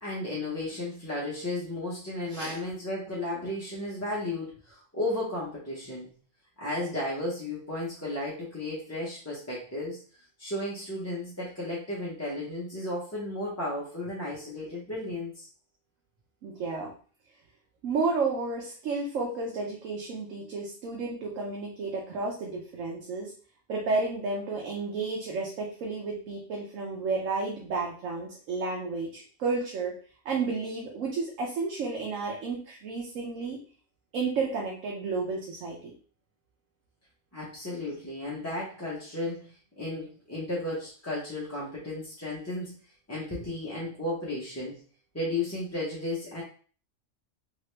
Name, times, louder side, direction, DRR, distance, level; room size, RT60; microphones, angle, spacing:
voice 1, 0.0-6.1 6.6-10.0 10.4-15.5 37.3-42.7 43.1-44.8 45.1-46.4, left 1 dB, 15° left, -7 dB, 0.6 m, -34 dB
voice 2, 2.3-2.6 16.4-16.9 17.8-23.3 23.7-30.0 30.2-33.6 34.1-35.9, right 4 dB, 90° right, -1 dB, 1.1 m, -32 dB
2.9 x 2.9 x 3.2 m, 0.43 s
omnidirectional pair, 1.3 m